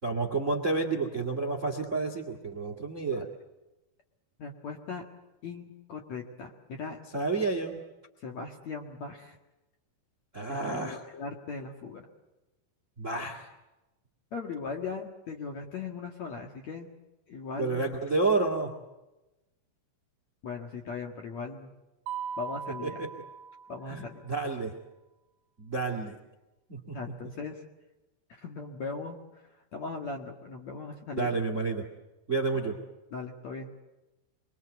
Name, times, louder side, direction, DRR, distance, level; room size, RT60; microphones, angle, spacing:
voice 1, 0.0-3.3 7.1-7.8 10.3-11.0 13.0-13.5 17.6-18.7 22.8-23.1 23.9-24.7 25.6-26.2 26.7-27.1 31.1-31.8 32.3-32.8, right 3 dB, 30° right, 6 dB, 1.5 m, -30 dB
voice 2, 4.4-5.0 5.4-7.0 8.2-9.4 10.5-12.1 14.3-16.9 17.3-17.9 20.4-21.7 22.4-23.0 23.7-24.2 26.9-27.6 28.3-29.4 29.7-31.4 33.1-33.7, left 4 dB, 50° left, 3 dB, 2.4 m, -39 dB
Mallet percussion, 22.1-24.1, right 7 dB, 75° right, 3.3 m, -39 dB
26.5 x 23.0 x 8.1 m, 1.0 s
omnidirectional pair, 5.3 m